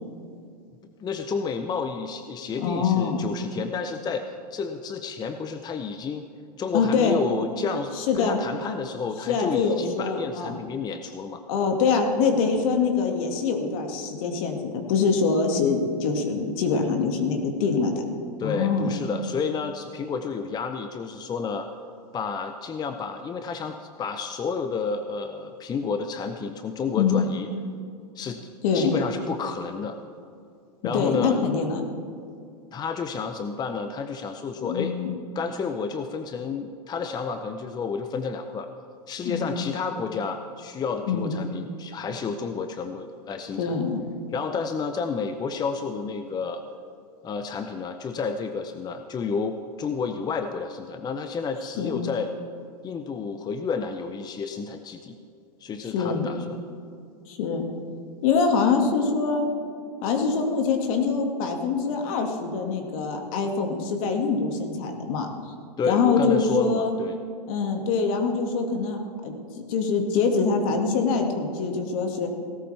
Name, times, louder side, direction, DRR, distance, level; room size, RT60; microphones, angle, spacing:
voice 1, 1.0-6.2 6.6-11.4 18.4-21.7 22.1-27.5 28.1-28.4 28.7-30.0 30.8-31.4 32.7-34.9 35.3-38.7 39.1-43.8 44.3-46.6 47.2-52.3 52.8-55.2 55.6-56.6 65.8-67.2, left 5 dB, 20° left, 8 dB, 0.6 m, -30 dB
voice 2, 2.6-3.2 6.7-7.2 8.0-8.4 9.3-10.6 11.5-18.0 18.4-18.9 27.0-27.3 28.6-28.9 30.8-31.8 34.6-35.1 39.2-39.7 41.1-41.3 43.6-44.0 51.8-52.0 55.9-56.3 57.3-57.6 58.2-59.5 60.0-65.3 65.8-66.9 67.5-69.3 69.7-72.3, left 5 dB, 55° left, 4 dB, 2.0 m, -24 dB
17.5 x 13.0 x 3.4 m, 2.4 s
hypercardioid pair, 110°, 21 cm